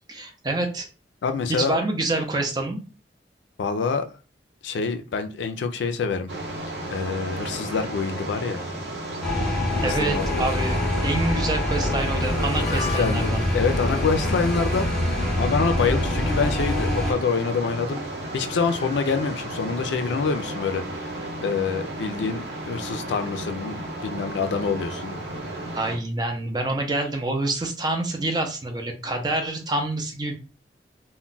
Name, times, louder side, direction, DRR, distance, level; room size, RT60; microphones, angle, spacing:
voice 1, 0.1-0.9 1.5-2.8 9.8-10.8 11.0-13.4 25.7-30.3, right 2 dB, 25° right, 0.4 m, -27 dB
voice 2, 1.2-1.8 3.6-4.1 4.6-6.3 6.9-8.7 9.8-10.3 12.6-14.9 15.4-18.0 18.3-20.8 21.4-25.2, left 5 dB, 85° left, 0.4 m, -26 dB
sound 1, 6.3-26.0, right 1 dB, 75° right, 0.8 m, -34 dB
sound 2, 9.2-17.1, left 1 dB, ahead, 0.7 m, -25 dB
Harmonica, 12.3-22.0, left 4 dB, 40° left, 0.6 m, -41 dB
2.2 x 2.1 x 3.8 m
head